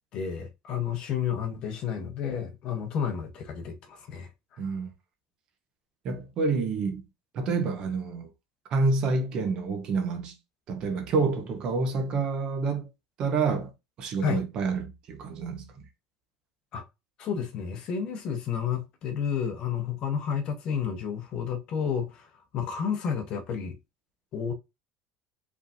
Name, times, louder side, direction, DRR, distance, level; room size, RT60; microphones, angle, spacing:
voice 1, 0.1-4.6 14.2-14.4 16.7-16.8 17.2-22.3 22.5-23.8 24.3-24.5, left 7 dB, 40° left, 1.0 m, -31 dB
voice 2, 4.6-4.9 6.0-7.0 7.3-8.3 8.7-10.4 10.7-12.9 13.2-13.7 14.0-15.8, right 4 dB, 40° right, 1.1 m, -28 dB
5.2 x 3.4 x 2.6 m
cardioid pair, 160°, 2 cm